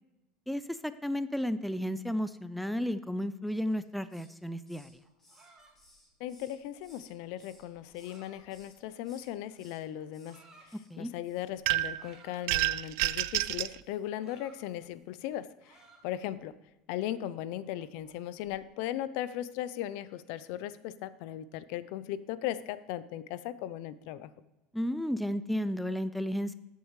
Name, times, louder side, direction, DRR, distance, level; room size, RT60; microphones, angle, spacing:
voice 1, 0.5-4.9 10.9-11.1 24.7-26.6, equal, ahead, 13 dB, 0.5 m, -33 dB
Hiss, 3.6-4.4 4.7-7.1 7.4-8.2 8.5-8.8 9.0-9.8 10.1-10.4 10.6-10.9 11.2-11.5 11.7-11.9, left 1 dB, 20° left, 2.8 m, -61 dB
sound 1, 5.0-9.3 10.0-10.7 11.9-12.6 13.8-15.3 15.6-16.4 16.9-18.6, right 3 dB, 30° right, 3.2 m, -61 dB
voice 2, 6.2-10.4 11.0-15.8 16.0-16.5 16.9-24.3, left 12 dB, 70° left, 15 dB, 0.5 m, -37 dB
sound 2, 11.7-12.1 12.5-13.8, right 18 dB, 75° right, 0.3 m, -29 dB
14.0 x 8.1 x 3.2 m, 0.99 s
supercardioid pair, 120°, 2 cm